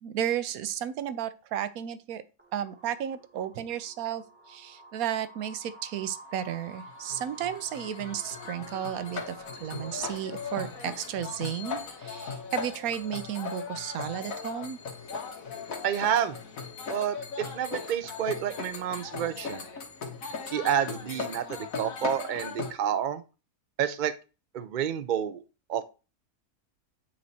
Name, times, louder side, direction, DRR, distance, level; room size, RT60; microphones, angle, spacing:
voice 1, 0.0-2.2 2.5-14.8, right 10 dB, 70° right, 1.0 m, -33 dB
sound 1, 2.4-11.9, right 1 dB, 10° right, 0.8 m, -50 dB
sound 2, 6.6-22.7, left 5 dB, 60° left, 1.6 m, -38 dB
voice 2, 15.8-16.4 16.9-19.7 20.5-23.2 23.8-24.1 24.5-25.4 25.7-25.8, right 9 dB, 90° right, 0.4 m, -29 dB
8.7 x 3.1 x 4.1 m
omnidirectional pair, 1.6 m